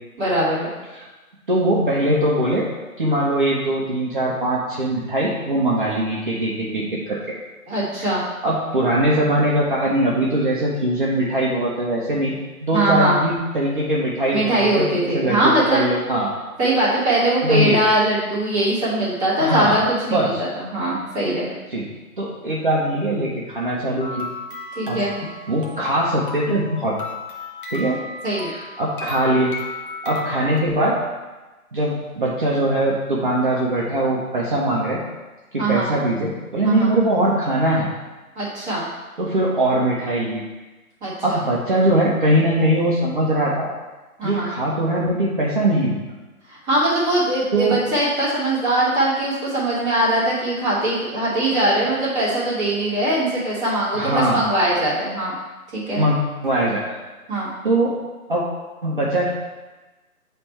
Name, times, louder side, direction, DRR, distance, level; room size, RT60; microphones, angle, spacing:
voice 1, 0.2-0.7 7.7-8.2 12.7-13.2 14.3-15.8 16.6-21.5 24.7-25.2 28.2-28.5 35.6-35.9 36.6-36.9 38.3-38.9 41.0-41.4 44.2-44.5 46.5-55.3 55.7-56.0 57.3-57.5, right 1 dB, 5° right, -14 dB, 1.2 m, -21 dB
voice 2, 1.5-2.7 3.0-7.3 8.0-8.1 8.4-16.3 17.4-17.8 19.4-19.8 20.1-20.4 21.7-21.9 22.2-24.3 24.9-25.0 25.5-27.0 27.7-28.0 28.4-29.5 30.0-31.0 31.7-35.0 35.5-37.9 39.2-40.4 41.2-43.7 44.2-46.0 47.5-47.8 53.9-54.6 56.0-56.9 57.6-58.0 58.3-58.4 58.8-59.3, right 1 dB, 35° right, -6 dB, 0.8 m, -21 dB
sound 1, 24.0-30.6, left 3 dB, 35° left, 0.9 m, -35 dB
8.2 x 3.4 x 4.4 m, 1.2 s
hypercardioid pair, 165°, 44 cm